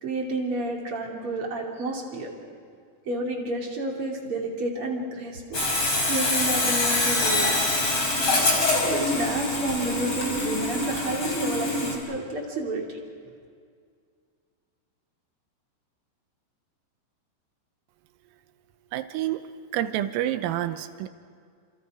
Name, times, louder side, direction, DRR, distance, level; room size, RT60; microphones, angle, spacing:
voice 1, 0.0-2.3 3.1-5.7 6.1-7.8 8.8-13.0, right 2 dB, 35° right, -1 dB, 2.8 m, -30 dB
Sawing, 5.5-12.0, left 2 dB, 25° left, 4.4 m, -24 dB
voice 2, 18.9-19.4 19.7-21.1, right 13 dB, 85° right, 10 dB, 3.6 m, -28 dB
30.0 x 27.5 x 5.0 m, 2.2 s
omnidirectional pair, 5.9 m